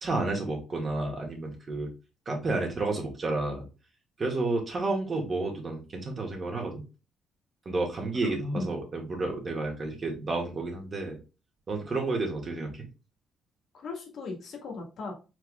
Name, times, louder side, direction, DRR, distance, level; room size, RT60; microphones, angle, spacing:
voice 1, 0.0-1.9 2.3-3.6 4.2-6.8 7.7-11.2 11.7-12.7, right 2 dB, 40° right, 1 dB, 2.0 m, -31 dB
voice 2, 8.2-8.7 13.7-15.1, left 3 dB, 70° left, 1 dB, 1.9 m, -37 dB
4.8 x 4.3 x 2.4 m, 0.30 s
cardioid pair, 90°, 0 cm